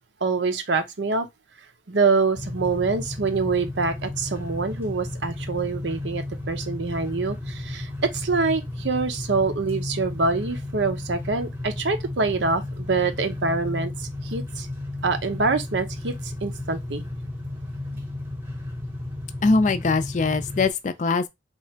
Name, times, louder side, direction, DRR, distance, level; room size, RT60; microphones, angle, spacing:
voice 1, 0.2-1.3 1.9-14.7 15.0-17.0, right 4 dB, 85° right, 0.8 m, -25 dB
sound 1, 2.3-20.7, left 1 dB, 10° right, 0.8 m, -33 dB
voice 2, 19.4-21.3, left 3 dB, 45° left, 0.4 m, -22 dB
3.1 x 2.5 x 4.3 m
head